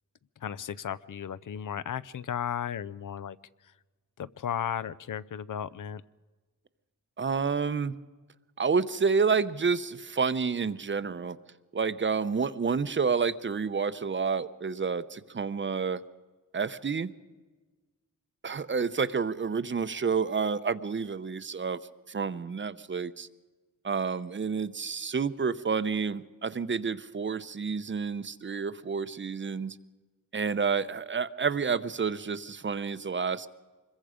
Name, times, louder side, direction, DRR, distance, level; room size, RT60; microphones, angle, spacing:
voice 1, 0.4-3.4 4.2-6.0, left 9 dB, 70° left, 17 dB, 0.6 m, -35 dB
voice 2, 7.2-7.9 8.6-11.4 11.7-16.0 16.5-17.1 18.4-21.8 22.1-23.3 23.8-29.8 30.3-33.5, right 5 dB, 35° right, 14 dB, 0.6 m, -29 dB
25.5 x 22.0 x 5.0 m, 1.3 s
wide cardioid pair, 160°, 33 cm